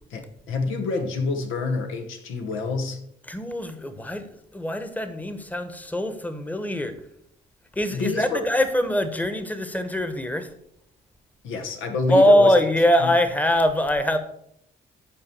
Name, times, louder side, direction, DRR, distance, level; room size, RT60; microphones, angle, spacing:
voice 1, 0.1-3.0 7.9-8.4 11.4-12.6 13.0-13.1, left 3 dB, 85° left, 6 dB, 1.3 m, -27 dB
voice 2, 3.3-7.0 7.8-10.5 12.1-14.2, equal, 10° left, 10 dB, 1.1 m, -22 dB
8.9 x 4.6 x 6.9 m, 0.73 s
cardioid pair, 90°, 20 cm